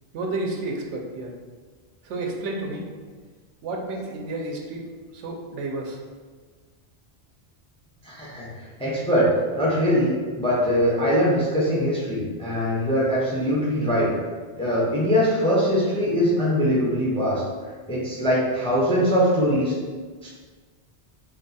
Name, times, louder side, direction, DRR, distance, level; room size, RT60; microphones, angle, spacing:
voice 1, 0.1-1.3 2.0-2.9 3.6-4.8 5.1-6.0, right 2 dB, 85° right, 1 dB, 0.9 m, -31 dB
voice 2, 8.0-8.5 8.8-9.3 9.6-14.1 14.6-17.4 17.9-19.8 20.2-20.3, equal, 5° left, -6 dB, 0.4 m, -22 dB
2.7 x 2.3 x 4.0 m, 1.5 s
omnidirectional pair, 1.2 m